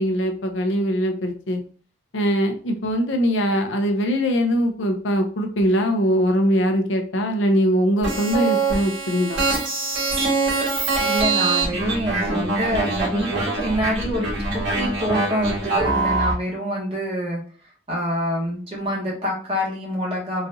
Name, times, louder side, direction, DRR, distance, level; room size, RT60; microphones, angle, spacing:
voice 1, 0.0-1.6 2.1-9.4, equal, 70° left, 4 dB, 0.6 m, -21 dB
sound 1, 8.0-16.3, right 3 dB, 70° right, 1.7 m, -23 dB
voice 2, 11.0-17.4 17.9-20.5, equal, 30° right, -3 dB, 1.2 m, -26 dB
3.9 x 2.4 x 2.7 m, 0.40 s
head